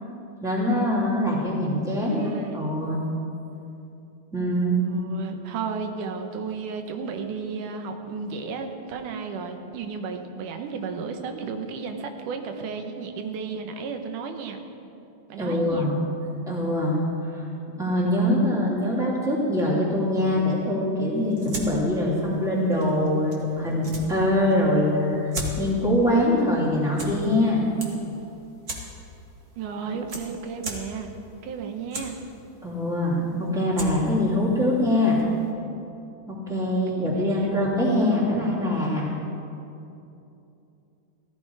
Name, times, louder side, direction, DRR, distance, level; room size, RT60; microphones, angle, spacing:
voice 1, 0.4-3.0 4.3-4.8 15.4-15.9 16.5-17.4 17.8-25.2 25.6-27.6 32.6-35.2 36.3-39.1, left 1 dB, ahead, -5 dB, 2.4 m, -23 dB
voice 2, 2.0-2.6 4.9-14.6 15.3-15.9 29.6-31.1 31.4-32.2 36.9-37.6, right 5 dB, 85° right, 5 dB, 2.5 m, -33 dB
sound 1, 21.1-35.5, right 1 dB, 35° right, 1.7 m, -40 dB
16.0 x 14.0 x 4.7 m, 2.7 s
omnidirectional pair, 3.5 m